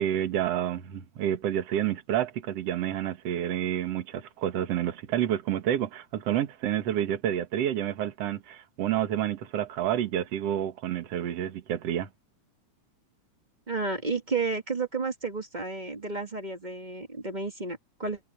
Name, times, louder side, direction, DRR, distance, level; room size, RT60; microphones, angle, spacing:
voice 1, 0.0-12.1, right 11 dB, 60° right, 2.5 m, -29 dB
voice 2, 13.7-18.2, right 4 dB, 25° right, 1.1 m, -32 dB
omnidirectional pair, 3.4 m